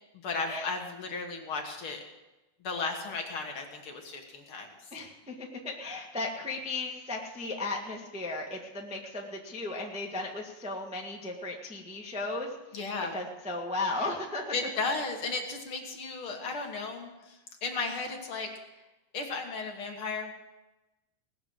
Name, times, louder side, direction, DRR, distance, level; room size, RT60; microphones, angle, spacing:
voice 1, 0.2-2.0 2.6-4.9 12.7-13.2 14.5-18.5 19.1-20.3, left 4 dB, 50° left, 2 dB, 2.0 m, -35 dB
voice 2, 4.9-12.5 13.1-14.5, left 2 dB, 10° right, -1 dB, 0.3 m, -35 dB
18.5 x 7.0 x 7.8 m, 1.1 s
omnidirectional pair, 3.6 m